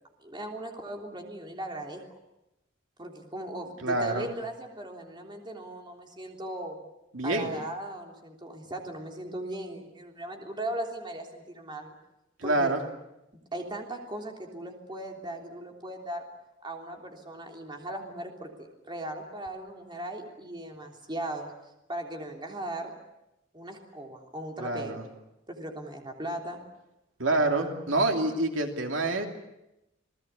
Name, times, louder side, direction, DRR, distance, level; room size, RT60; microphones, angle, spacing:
voice 1, 0.2-2.0 3.0-6.8 7.2-11.9 12.4-12.7 13.5-16.3 16.6-21.5 21.9-22.9 23.5-25.0 25.5-26.6, right 1 dB, 25° right, 2 dB, 3.4 m, -38 dB
voice 2, 3.8-4.3 7.1-7.5 12.4-12.8 24.6-25.0 27.2-29.3, right 2 dB, 85° right, 3 dB, 2.9 m, -27 dB
28.5 x 19.0 x 8.3 m, 0.91 s
head